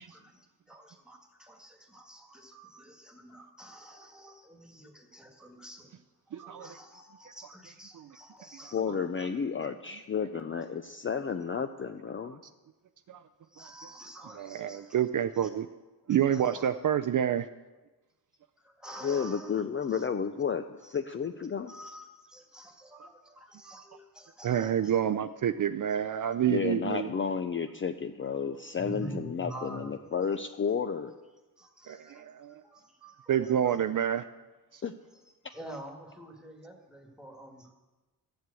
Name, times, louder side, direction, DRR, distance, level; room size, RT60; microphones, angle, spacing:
voice 1, 0.0-6.0 6.3-8.8 9.1-9.3 13.4-15.5 16.1-16.7 18.6-20.1 20.8-21.0 21.7-25.0 25.9-26.0 28.5-30.1 31.6-33.8 35.5-37.7, right 1 dB, ahead, 3 dB, 1.8 m, -48 dB
voice 2, 6.3-6.7 13.1-13.2 14.4-15.7 16.1-17.5 24.4-27.1 31.9-32.6 33.3-34.2 34.7-34.8, right 10 dB, 50° right, 9 dB, 0.5 m, -28 dB
voice 3, 8.7-12.4 19.0-21.7 26.5-31.1 34.8-34.9, left 6 dB, 30° left, 8 dB, 0.5 m, -32 dB
14.0 x 7.7 x 8.3 m, 1.2 s
wide cardioid pair, 155°, 42 cm